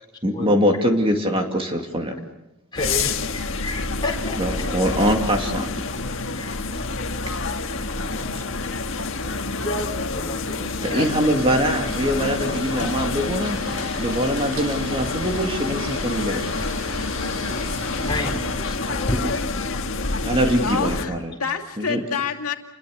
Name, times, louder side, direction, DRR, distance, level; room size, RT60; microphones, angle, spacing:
voice 1, 0.2-2.1 4.3-5.7 8.3-8.4 10.8-13.6 14.0-16.4 20.2-21.3 21.8-22.0, equal, 25° right, 3 dB, 2.5 m, -23 dB
voice 2, 2.7-4.6 6.3-6.6 9.6-11.0 17.3-17.6 18.0-19.1, left 2 dB, 20° left, 0 dB, 4.4 m, -31 dB
sound 1, 2.8-21.1, left 3 dB, 60° left, 1.7 m, -28 dB
sound 2, 11.0-18.2, right 2 dB, 85° right, 6.6 m, -38 dB
sound 3, 12.1-19.3, left 1 dB, 35° left, 6.0 m, -37 dB
voice 3, 20.6-22.6, left 6 dB, 85° left, 4 dB, 2.3 m, -27 dB
29.0 x 21.5 x 6.7 m, 0.97 s
head